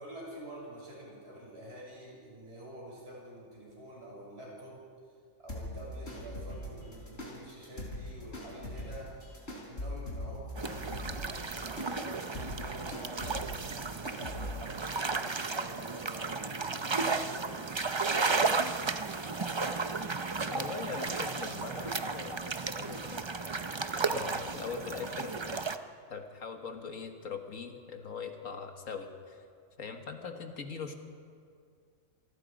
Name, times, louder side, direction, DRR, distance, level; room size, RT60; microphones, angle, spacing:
voice 1, 0.0-4.8 5.4-9.1 9.7-18.4 24.0-24.3 30.2-30.3, equal, 50° right, -4 dB, 6.8 m, -48 dB
sound 1, 5.5-14.6, left 1 dB, 50° left, 4.3 m, -42 dB
sound 2, 10.6-25.8, right 4 dB, 30° right, 0.6 m, -34 dB
voice 2, 20.4-23.3 23.9-25.4 26.1-29.5 29.8-30.9, left 5 dB, 75° left, 5 dB, 1.8 m, -41 dB
27.0 x 19.0 x 5.2 m, 2.2 s
omnidirectional pair, 1.4 m